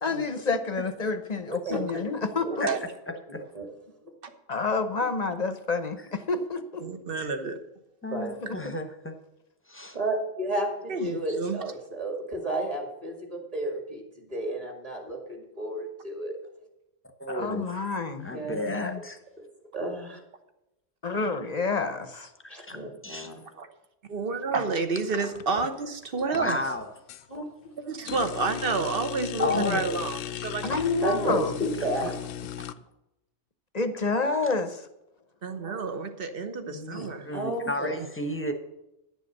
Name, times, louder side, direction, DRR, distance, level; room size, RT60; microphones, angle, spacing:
voice 1, 0.0-2.7 4.5-6.9 8.4-8.8 17.3-19.0 21.0-22.3 29.5-29.8 30.6-31.5 33.7-34.9, left 4 dB, 40° left, 9 dB, 0.8 m, -29 dB
voice 2, 3.3-3.7 8.1-8.3 9.9-16.4 18.3-18.7 19.7-20.2 22.5-23.3 27.3-27.4 31.0-32.5 35.7-35.8 36.9-38.0, right 1 dB, 30° right, 2 dB, 2.2 m, -32 dB
voice 3, 6.8-7.6 10.9-11.6 23.5-23.7 24.1-26.6 27.8-30.8 32.0-32.2 35.4-37.3 38.0-38.1, right 4 dB, 50° right, 8 dB, 1.1 m, -30 dB
voice 4, 8.0-9.1 9.7-10.0 17.2-17.8 18.2-19.2 22.4-22.8 23.0-23.3 25.1-25.3 26.3-26.8 29.4-30.0 32.6-32.7 36.7-38.5, left 1 dB, 10° left, 6 dB, 1.0 m, -32 dB
sound 1, 25.3-25.8 26.2-27.2 28.1-32.7, left 10 dB, 85° left, 0.9 m, -37 dB
10.5 x 7.0 x 6.5 m, 0.90 s
omnidirectional pair, 1.3 m